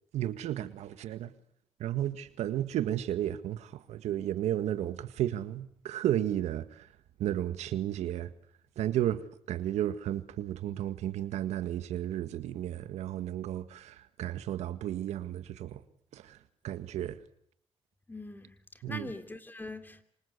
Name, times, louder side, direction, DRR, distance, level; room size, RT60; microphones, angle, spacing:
voice 1, 0.1-1.3 1.8-6.9 7.2-8.3 8.8-9.2 9.5-15.8 16.1-16.4 16.6-17.2 18.8-19.1, right 12 dB, 85° right, 1.7 m, -33 dB
voice 2, 18.1-18.6 18.9-20.0, left 2 dB, 15° left, 3.1 m, -42 dB
26.0 x 26.0 x 8.2 m
cardioid pair, 85°, 11 cm